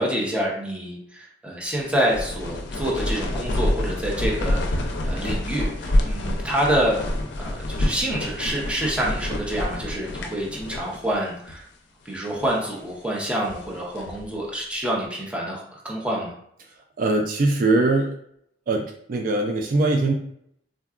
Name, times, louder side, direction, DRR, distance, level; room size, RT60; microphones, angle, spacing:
voice 1, 0.0-7.0 7.4-11.6 12.1-16.3, equal, 5° right, -4 dB, 0.7 m, -27 dB
sound 1, 1.7-11.2 11.5-11.6 12.2-12.7 13.2-14.3, left 1 dB, 75° left, 0.4 m, -27 dB
voice 2, 17.0-18.1 18.7-20.1, right 2 dB, 50° right, 2 dB, 0.3 m, -21 dB
3.6 x 2.2 x 2.3 m, 0.69 s
head